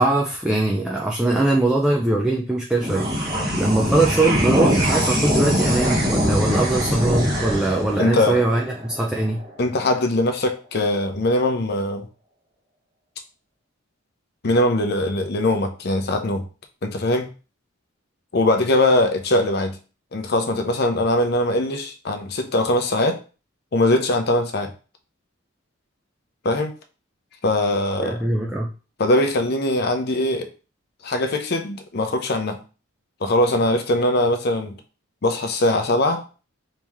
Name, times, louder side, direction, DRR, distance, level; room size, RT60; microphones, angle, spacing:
voice 1, 0.0-9.4 28.0-28.7, right 2 dB, 5° right, 0.4 m, -21 dB
sound 1, 2.8-9.5, equal, 20° right, 1.1 m, -22 dB
voice 2, 8.0-8.4 9.6-12.1 14.4-16.4 16.8-17.3 18.3-19.8 20.1-23.2 23.7-24.7 26.4-26.7 27.4-28.2 29.0-30.5 31.0-32.6 33.2-34.8 35.2-36.2, left 1 dB, 50° left, 0.6 m, -21 dB
3.1 x 2.9 x 3.5 m
head